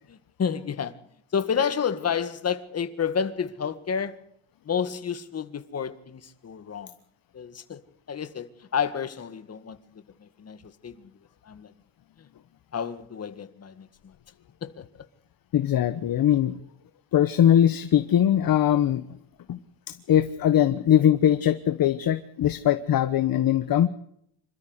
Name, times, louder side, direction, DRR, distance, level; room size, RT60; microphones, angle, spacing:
voice 1, 0.1-0.9 1.3-4.2 4.7-6.9 7.3-7.8 8.1-9.8 10.2-10.6 10.8-11.1 11.4-11.7 12.7-14.2 14.6-14.8, left 7 dB, 30° left, 1.9 m, -30 dB
voice 2, 15.5-16.6 17.1-19.0 19.5-19.6 19.9-23.9, left 10 dB, 50° left, 1.2 m, -21 dB
26.5 x 13.0 x 8.1 m
cardioid pair, 145°, 46 cm